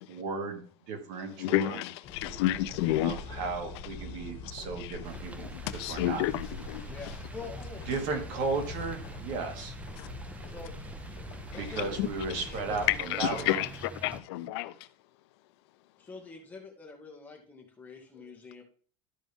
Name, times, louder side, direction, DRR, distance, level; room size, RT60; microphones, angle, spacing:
voice 1, 0.1-1.8 3.0-6.2 7.9-9.7 11.5-13.7, right 4 dB, 60° right, 2.2 m, -35 dB
voice 2, 1.4-3.2 4.4-4.5 4.8-5.0 5.4-6.8 10.0-10.1 11.5-11.6 12.0-12.4 12.9-14.7, left 14 dB, 75° left, 0.5 m, -30 dB
sound 1, 2.0-13.0, left 3 dB, 35° left, 2.2 m, -43 dB
sound 2, 5.0-14.2, right 2 dB, 10° right, 0.5 m, -47 dB
voice 3, 6.9-8.4 10.5-10.7 11.5-12.0 12.3-13.2 13.7-13.8 16.0-18.6, left 4 dB, 10° left, 1.8 m, -46 dB
12.5 x 5.2 x 3.5 m
cardioid pair, 155°, 14 cm